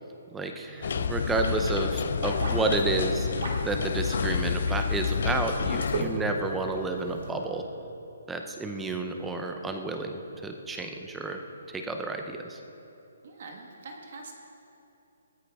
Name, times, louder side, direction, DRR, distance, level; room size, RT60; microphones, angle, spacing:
voice 1, 0.3-3.3 3.6-7.6 8.3-11.4 11.7-12.6, right 2 dB, 5° right, 4 dB, 0.6 m, -31 dB
sound 1, 0.8-6.0, left 6 dB, 45° left, 0.3 m, -29 dB
sound 2, 0.8-7.3, right 2 dB, 55° right, 2.8 m, -38 dB
voice 2, 13.2-14.4, right 3 dB, 40° right, 2 dB, 1.4 m, -44 dB
19.0 x 13.5 x 3.5 m, 2.9 s
hypercardioid pair, 180°, 0 cm